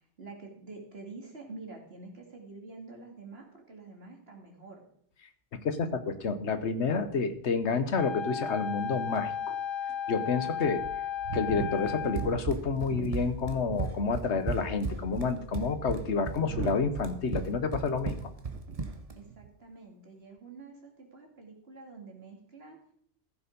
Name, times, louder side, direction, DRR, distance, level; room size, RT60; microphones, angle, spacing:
voice 1, 0.2-4.8 19.2-22.8, right 3 dB, 60° right, 1 dB, 2.7 m, -47 dB
voice 2, 5.6-9.6 10.1-10.8 11.3-18.3, left 4 dB, 75° left, 10 dB, 1.3 m, -29 dB
Wind instrument woodwind instrument, 7.9-12.4, left 8 dB, 35° left, 0.4 m, -34 dB
sound 1, 8.5-8.6 9.1-9.2 9.9-10.0 10.6-14.0 14.3-14.8 15.5-18.9 19.2-19.6, right 10 dB, 80° right, 1.0 m, -41 dB
Run, 12.2-19.2, right 3 dB, 35° right, 0.9 m, -36 dB
15.0 x 6.9 x 5.2 m, 0.64 s
omnidirectional pair, 1.2 m